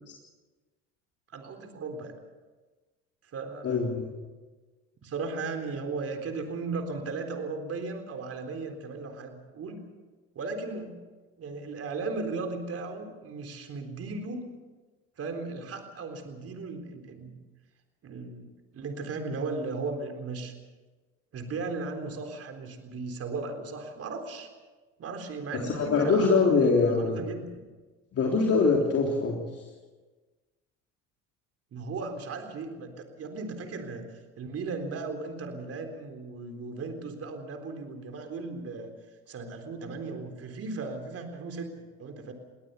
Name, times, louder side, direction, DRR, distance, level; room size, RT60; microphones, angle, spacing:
voice 1, 1.3-2.1 3.2-3.8 5.0-9.9 10.3-11.0 11.4-14.5 15.2-17.3 18.0-18.5 18.7-20.5 21.3-24.5 25.0-27.5 31.7-38.9 39.3-41.7 42.0-42.3, right 3 dB, 45° right, 6 dB, 3.9 m, -36 dB
voice 2, 3.6-4.1 25.6-27.2 28.1-29.5, left 4 dB, 45° left, -1 dB, 3.6 m, -23 dB
22.0 x 18.0 x 6.9 m, 1.3 s
supercardioid pair, 80°, 32 cm